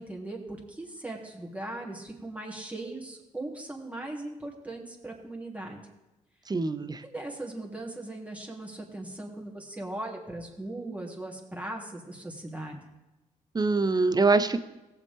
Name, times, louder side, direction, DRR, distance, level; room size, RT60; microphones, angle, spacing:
voice 1, 0.0-5.8 7.0-12.8, right 2 dB, 10° right, -1 dB, 3.1 m, -39 dB
voice 2, 6.5-7.0 13.5-14.6, right 3 dB, 25° right, 12 dB, 0.9 m, -24 dB
17.5 x 7.3 x 3.7 m, 1.0 s
supercardioid pair, 60°, 15 cm